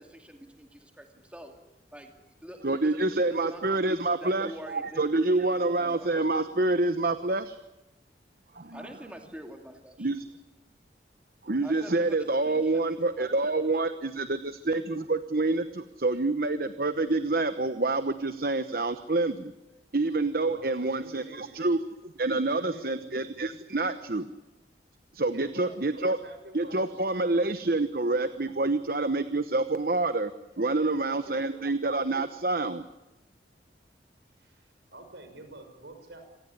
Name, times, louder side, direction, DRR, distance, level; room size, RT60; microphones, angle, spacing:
voice 1, 0.0-1.5 1.9-6.3 8.7-10.1 11.6-12.2 12.4-14.0, equal, 5° right, 4 dB, 2.5 m, -46 dB
voice 2, 2.6-7.6 8.5-8.8 10.0-10.3 11.4-19.5 19.9-24.3 25.1-26.2 26.5-30.3 30.6-32.8, right 2 dB, 55° right, 11 dB, 1.0 m, -27 dB
voice 3, 20.4-21.6 22.3-23.3 25.3-27.0 30.5-31.7 34.3-36.2, right 2 dB, 70° right, 6 dB, 6.1 m, -48 dB
27.0 x 17.5 x 9.8 m, 1.0 s
head